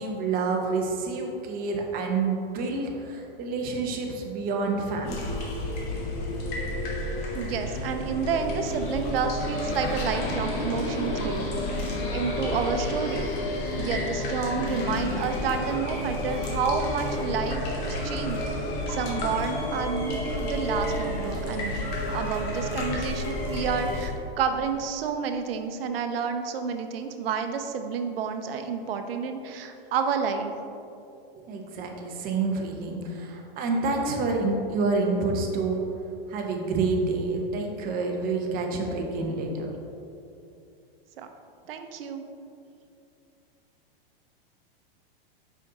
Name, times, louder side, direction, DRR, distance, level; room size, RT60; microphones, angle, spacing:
voice 1, 0.0-5.2 31.5-35.8 36.3-39.7, right 3 dB, 30° right, 1 dB, 0.9 m, -28 dB
sound 1, 5.0-24.1, left 1 dB, 50° left, 1.5 m, -30 dB
voice 2, 7.3-11.5 11.9-13.3 13.8-18.4 18.9-30.5 41.2-41.3 41.7-42.2, right 6 dB, 75° right, 6 dB, 0.7 m, -30 dB
5.4 x 5.1 x 3.8 m, 2.6 s
hypercardioid pair, 135°, 30 cm